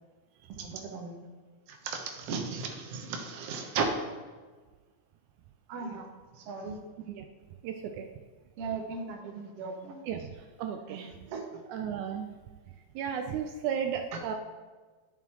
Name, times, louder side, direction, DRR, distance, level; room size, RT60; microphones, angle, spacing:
voice 1, 0.5-1.1 1.7-3.9 5.7-6.1 6.3-6.8 8.6-10.0 10.9-11.6 14.1-14.2, right 5 dB, 65° right, 2 dB, 1.8 m, -36 dB
voice 2, 7.6-8.1 10.1-10.3 10.6-11.1 11.7-12.3 13.0-14.3, right 8 dB, 80° right, 4 dB, 1.9 m, -34 dB
11.0 x 7.3 x 2.9 m, 1.4 s
omnidirectional pair, 3.4 m